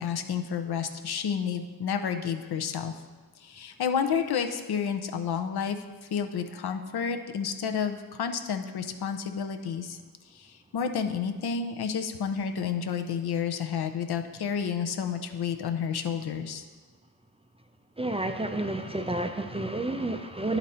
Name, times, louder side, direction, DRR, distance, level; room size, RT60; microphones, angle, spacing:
voice 1, 0.0-2.9 3.4-5.8 6.1-10.0 10.3-16.6, left 7 dB, 75° left, 6 dB, 0.6 m, -30 dB
voice 2, 18.0-20.6, right 2 dB, 15° right, 6 dB, 0.3 m, -30 dB
10.0 x 4.0 x 4.2 m, 1.4 s
wide cardioid pair, 90°, 39 cm